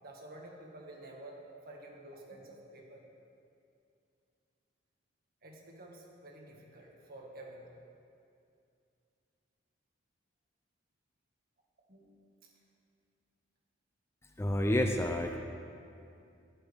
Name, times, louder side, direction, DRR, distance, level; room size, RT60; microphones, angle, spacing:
voice 1, 0.0-3.0 5.4-7.8 11.9-12.5, right 1 dB, 50° right, -1 dB, 1.9 m, -50 dB
voice 2, 14.4-15.4, left 1 dB, 15° left, 4 dB, 0.6 m, -29 dB
17.0 x 11.0 x 3.6 m, 2.5 s
head